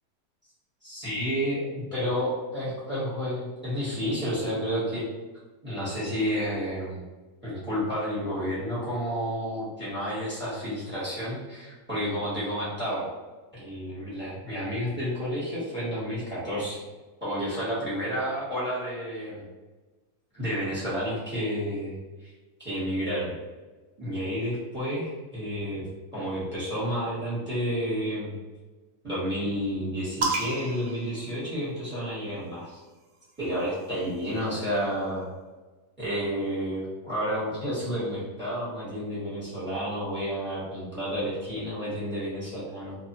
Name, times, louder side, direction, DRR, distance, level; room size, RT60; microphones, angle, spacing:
voice 1, 0.8-5.1 5.6-7.0 7.4-13.1 13.5-16.8 17.2-19.4 20.3-22.3 22.6-23.3 24.0-25.9 26.1-28.3 29.0-32.8 33.4-35.3 36.0-43.0, equal, 10° right, -7 dB, 0.9 m, -30 dB
sound 1, 30.2-32.0 33.1-34.8, right 3 dB, 75° right, 0.6 m, -34 dB
2.6 x 2.2 x 2.9 m, 1.2 s
omnidirectional pair, 1.8 m